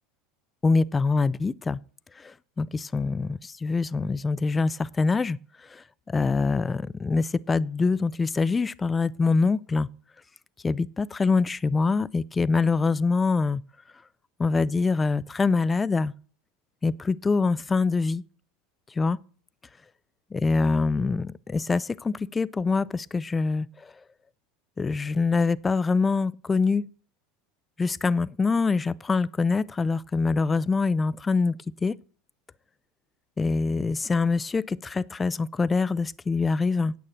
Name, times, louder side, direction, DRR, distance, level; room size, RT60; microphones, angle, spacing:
voice 1, 0.6-1.8 2.6-5.4 6.1-9.9 10.6-13.6 14.4-16.1 16.8-18.2 19.0-19.2 20.3-23.7 24.8-26.8 27.8-31.9 33.4-36.9, left 4 dB, 20° left, 0.5 m, -24 dB
9.4 x 8.5 x 7.4 m
hypercardioid pair, 85°, 0 cm